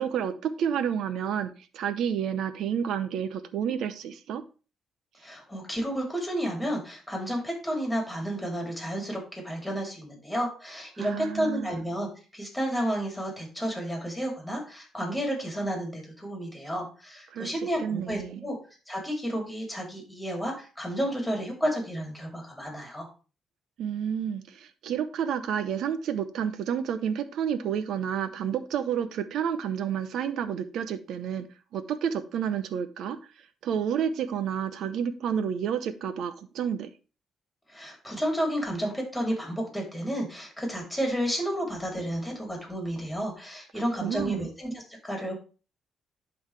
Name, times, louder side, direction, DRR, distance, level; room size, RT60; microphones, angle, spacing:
voice 1, 0.0-4.4 11.0-11.8 17.3-17.5 17.8-18.4 23.8-31.5 31.7-33.2 33.6-36.9 44.0-44.5, right 8 dB, 75° right, 12 dB, 0.7 m, -30 dB
voice 2, 5.2-18.6 18.9-23.1 37.7-45.3, equal, 5° left, 0 dB, 3.3 m, -31 dB
11.0 x 3.9 x 3.3 m, 0.35 s
cardioid pair, 90°, 0 cm